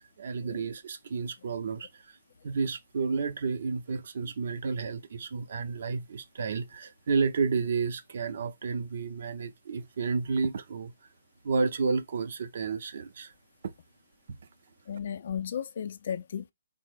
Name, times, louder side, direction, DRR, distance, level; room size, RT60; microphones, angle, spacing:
voice 1, 0.0-2.2 2.4-10.9 11.4-13.3 13.6-13.7 14.3-14.4, right 5 dB, 60° right, 0.5 m, -31 dB
voice 2, 14.9-16.5, left 8 dB, 60° left, 0.4 m, -35 dB
3.7 x 2.0 x 3.2 m
hypercardioid pair, 140°, 0 cm